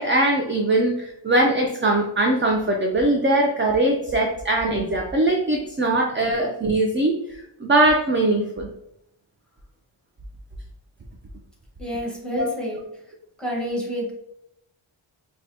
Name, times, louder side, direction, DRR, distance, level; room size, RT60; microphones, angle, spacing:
voice 1, 0.0-7.1 7.6-8.7 12.4-12.5, right 2 dB, 25° right, 1 dB, 0.4 m, -21 dB
voice 2, 11.8-12.8 13.4-14.1, equal, ahead, -3 dB, 1.1 m, -28 dB
4.7 x 2.2 x 2.6 m, 0.80 s
wide cardioid pair, 110°, 50 cm